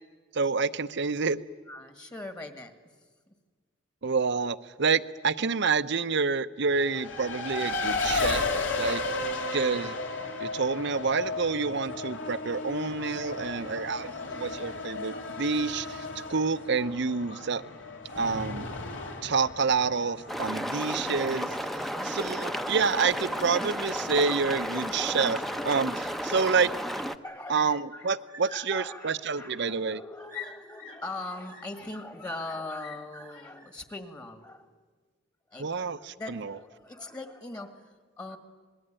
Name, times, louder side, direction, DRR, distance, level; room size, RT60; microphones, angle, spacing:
voice 1, 0.3-1.4 4.0-8.5 8.8-9.0 9.5-10.0 10.4-17.6 18.2-18.7 19.2-21.5 22.0-26.7 27.5-30.0 35.6-36.5, right 5 dB, 65° right, 14 dB, 0.8 m, -28 dB
voice 2, 1.7-2.7 3.3-3.4 13.5-15.1 21.6-22.1 27.2-34.7 35.5-38.4, left 2 dB, 20° left, 8 dB, 1.7 m, -41 dB
Race car auto racing, 6.7-25.9, left 3 dB, 70° left, 3.1 m, -35 dB
sound 1, 20.3-27.2, equal, ahead, 0.8 m, -33 dB
27.0 x 20.5 x 8.9 m, 1.5 s
head